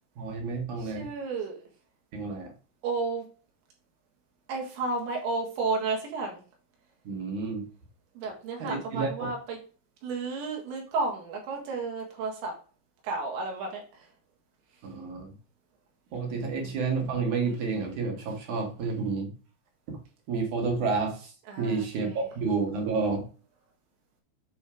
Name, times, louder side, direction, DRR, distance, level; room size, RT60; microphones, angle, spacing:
voice 1, 0.2-1.1 2.1-2.5 7.0-7.6 8.6-9.3 14.8-15.3 16.1-19.3 19.9-20.0 20.3-21.3 21.6-23.3, right 4 dB, 55° right, 2 dB, 2.3 m, -30 dB
voice 2, 0.8-1.6 2.8-3.3 4.5-6.4 8.2-9.6 10.0-12.6 13.0-13.8 16.4-16.8 21.5-22.2, right 3 dB, 80° right, 1 dB, 4.0 m, -32 dB
9.0 x 3.2 x 4.9 m, 0.37 s
omnidirectional pair, 5.2 m